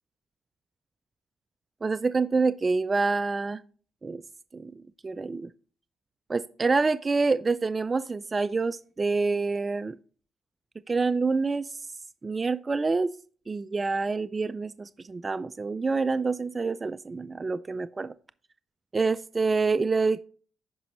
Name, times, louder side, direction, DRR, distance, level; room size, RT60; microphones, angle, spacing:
voice 1, 1.8-3.6 4.0-4.2 4.5-5.5 6.3-10.0 10.9-11.8 12.2-13.1 13.5-18.1 18.9-20.2, right 4 dB, 30° right, 13 dB, 0.3 m, -27 dB
14.0 x 5.2 x 3.0 m, 0.43 s
cardioid pair, 90°, 0 cm